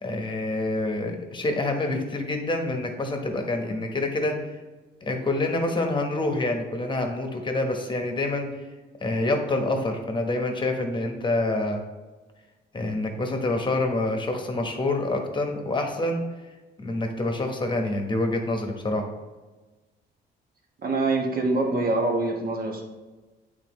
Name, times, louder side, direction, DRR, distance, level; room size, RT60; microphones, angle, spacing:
voice 1, 0.0-4.4 5.0-8.5 9.0-11.8 12.7-16.2 16.8-19.0, left 2 dB, 25° left, 3 dB, 1.1 m, -27 dB
voice 2, 20.8-22.8, right 2 dB, 50° right, 1 dB, 1.3 m, -25 dB
8.4 x 3.8 x 3.1 m, 1.2 s
cardioid pair, 90°, 20 cm